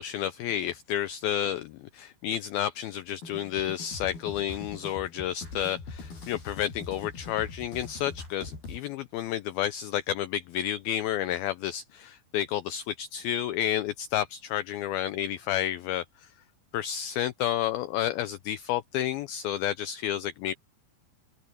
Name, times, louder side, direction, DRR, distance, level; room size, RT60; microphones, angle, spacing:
voice 1, 0.0-16.3 16.7-20.5, left 11 dB, 85° left, 2.1 m, -31 dB
sound 1, 3.2-8.8, left 4 dB, 60° left, 9.7 m, -42 dB
open air
omnidirectional pair, 5.1 m